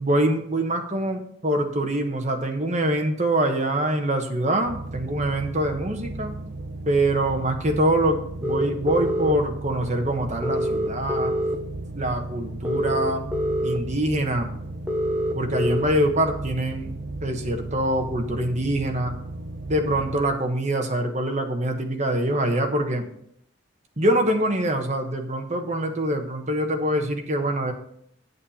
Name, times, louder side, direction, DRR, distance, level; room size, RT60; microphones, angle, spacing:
voice 1, 0.0-6.4 6.9-11.4 11.9-13.2 13.6-14.5 15.3-16.9 17.2-19.1 19.7-23.1 24.0-27.7, right 1 dB, 35° right, 4 dB, 1.2 m, -24 dB
sound 1, 4.6-20.2, right 2 dB, 60° right, 0.8 m, -35 dB
sound 2, 8.4-9.3 10.4-11.5 12.6-13.8 14.9-15.8, equal, 10° right, 0.9 m, -25 dB
8.9 x 8.4 x 4.2 m, 0.70 s
head